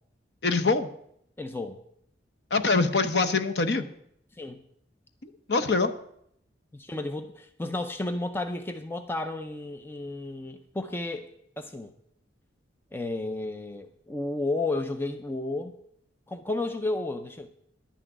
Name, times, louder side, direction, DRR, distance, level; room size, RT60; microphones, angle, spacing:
voice 1, 0.4-0.9 2.5-3.8 5.5-5.9, left 3 dB, 60° left, 9 dB, 0.8 m, -24 dB
voice 2, 1.4-1.8 4.4-4.6 6.7-11.3 11.6-11.9 12.9-15.7 16.3-17.5, left 2 dB, 10° left, 7 dB, 0.5 m, -32 dB
11.5 x 6.1 x 7.8 m, 0.72 s
head